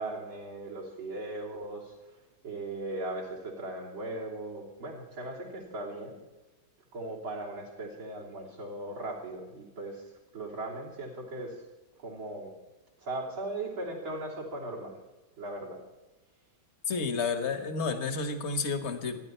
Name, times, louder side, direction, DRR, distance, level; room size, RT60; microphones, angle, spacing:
voice 1, 0.0-2.2 2.4-6.2 6.9-11.7 12.0-12.5 13.0-15.0 15.4-15.8, right 2 dB, 75° right, -5 dB, 4.0 m, -38 dB
voice 2, 16.9-19.2, left 4 dB, 35° left, 6 dB, 1.5 m, -31 dB
28.0 x 10.5 x 4.6 m, 1.0 s
omnidirectional pair, 2.2 m